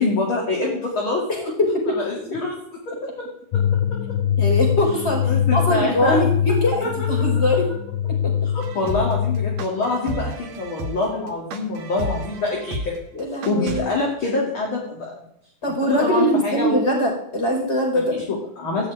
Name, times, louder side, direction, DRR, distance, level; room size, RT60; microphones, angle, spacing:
voice 1, 0.0-1.5 1.9-3.3 3.5-4.2 5.2-6.2 6.8-7.3 8.4-13.0 13.5-15.1 15.9-16.8 17.9-18.9, left 3 dB, 35° left, -2 dB, 2.6 m, -26 dB
voice 2, 1.3-1.8 4.4-5.2 5.5-7.7 8.1-8.2 13.1-13.9 15.6-18.1, equal, 15° left, 1 dB, 4.3 m, -22 dB
sound 1, 3.5-9.7, left 9 dB, 80° left, 2.2 m, -22 dB
sound 2, 8.6-13.8, right 1 dB, 55° right, 2.1 m, -31 dB
16.0 x 6.2 x 9.3 m, 0.77 s
omnidirectional pair, 5.0 m